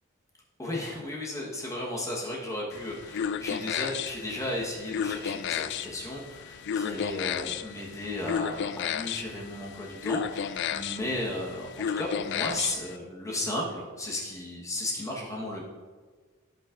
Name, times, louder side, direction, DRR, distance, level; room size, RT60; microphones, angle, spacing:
voice 1, 0.6-15.6, left 1 dB, 15° left, -3 dB, 1.2 m, -34 dB
sound 1, 2.7-13.0, left 8 dB, 55° left, 0.3 m, -33 dB
15.0 x 5.5 x 2.5 m, 1.4 s
head